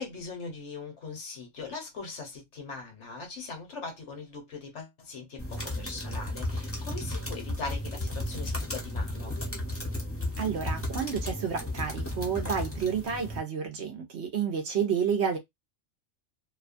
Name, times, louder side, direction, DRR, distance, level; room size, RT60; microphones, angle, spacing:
voice 1, 0.0-9.3, left 4 dB, 65° left, 1.2 m, -40 dB
sound 1, 5.4-13.4, left 1 dB, 15° left, 0.7 m, -34 dB
voice 2, 10.4-15.4, right 7 dB, 60° right, 1.0 m, -30 dB
2.8 x 2.2 x 2.4 m
omnidirectional pair, 1.4 m